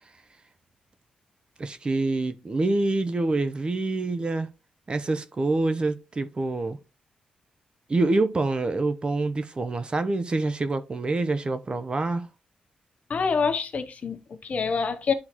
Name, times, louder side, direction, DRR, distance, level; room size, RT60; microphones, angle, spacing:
voice 1, 1.6-4.5 4.9-6.8 7.9-12.3, right 2 dB, 35° right, 0.8 m, -26 dB
voice 2, 13.1-15.1, left 5 dB, 50° left, 0.8 m, -26 dB
11.0 x 3.9 x 3.0 m
cardioid pair, 75°, 3 cm